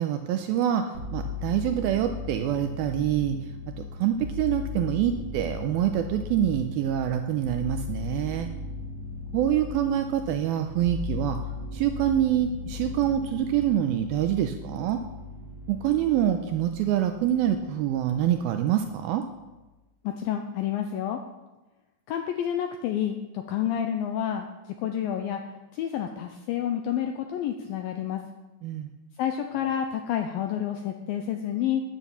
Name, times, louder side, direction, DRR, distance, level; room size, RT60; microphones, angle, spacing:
voice 1, 0.0-3.4 3.7-8.5 9.3-11.4 11.7-15.0 15.7-19.3 28.6-28.9, right 11 dB, 85° right, 6 dB, 2.2 m, -26 dB
sound 1, 0.9-18.4 18.7-19.5, left 4 dB, 60° right, 2.2 m, -37 dB
voice 2, 20.0-21.2 22.1-24.5 24.8-25.4 25.7-28.2 29.2-31.8, left 10 dB, 85° left, 5 dB, 2.1 m, -29 dB
10.5 x 9.1 x 7.0 m, 1.1 s
omnidirectional pair, 4.9 m